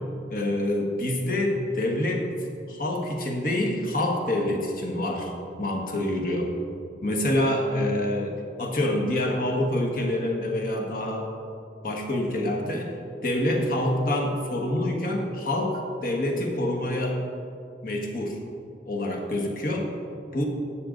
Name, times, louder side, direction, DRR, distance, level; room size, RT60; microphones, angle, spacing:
voice 1, 0.3-2.2 2.7-5.3 5.6-6.5 7.0-8.3 8.6-11.3 11.8-12.9 13.2-17.2 17.8-18.4 18.8-19.9 20.3-20.4, left 1 dB, 50° left, 0 dB, 1.5 m, -26 dB
12.5 x 8.6 x 3.9 m, 2.7 s
head